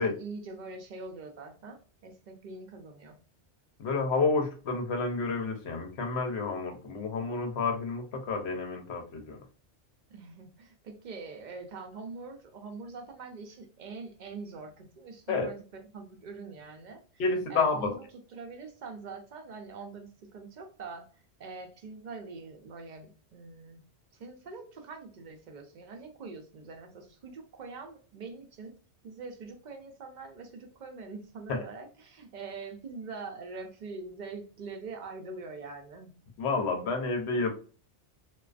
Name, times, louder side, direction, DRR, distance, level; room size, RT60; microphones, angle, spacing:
voice 1, 0.0-3.2 10.1-17.2 17.5-18.0 18.3-23.8 24.1-28.7 29.0-36.1, right 4 dB, 55° right, 4 dB, 0.5 m, -44 dB
voice 2, 3.8-9.4 15.3-15.5 17.2-17.9 31.5-31.6 36.4-37.6, left 4 dB, 70° left, 4 dB, 0.8 m, -30 dB
2.3 x 2.3 x 2.3 m, 0.38 s
omnidirectional pair, 1.2 m